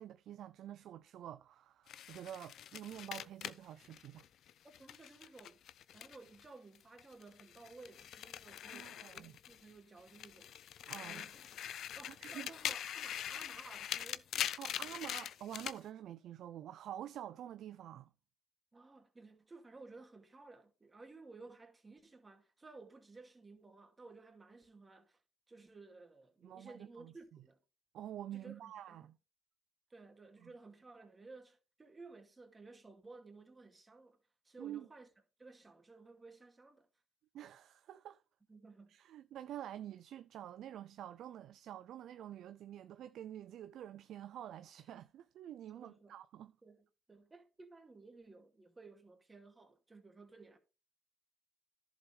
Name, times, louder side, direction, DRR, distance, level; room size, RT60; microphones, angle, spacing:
voice 1, 0.0-4.2 8.7-9.4 10.9-11.3 12.2-12.5 14.6-18.1 26.4-27.1 27.9-29.2 30.4-30.5 34.6-34.9 37.3-38.2 38.9-46.5, right 11 dB, 70° right, 0.4 m, -48 dB
sound 1, 1.9-6.5 6.8-9.7 10.1-15.8, left 10 dB, 70° left, 0.4 m, -43 dB
voice 2, 4.6-5.6 5.9-10.5 11.0-11.5 12.0-14.3 18.7-25.2 25.5-27.6 28.3-29.1 29.9-34.2 34.4-35.1 35.4-36.9 38.5-39.0 45.7-46.2 46.6-50.6, right 3 dB, 25° right, 2.4 m, -56 dB
11.0 x 7.2 x 3.3 m
supercardioid pair, 60°, 0 cm